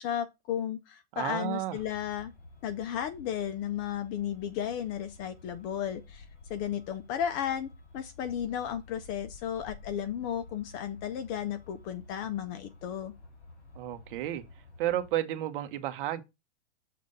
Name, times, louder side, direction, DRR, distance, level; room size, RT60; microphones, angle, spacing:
voice 1, 0.0-2.3 2.6-6.2 6.5-13.1, left 9 dB, 25° left, 0.5 m, -34 dB
voice 2, 1.1-1.8 13.8-14.4 14.8-16.2, right 13 dB, 50° right, 1.1 m, -32 dB
Truck, 1.8-15.1, left 3 dB, 50° left, 4.9 m, -51 dB
6.7 x 3.3 x 5.4 m
hypercardioid pair, 140°, 35 cm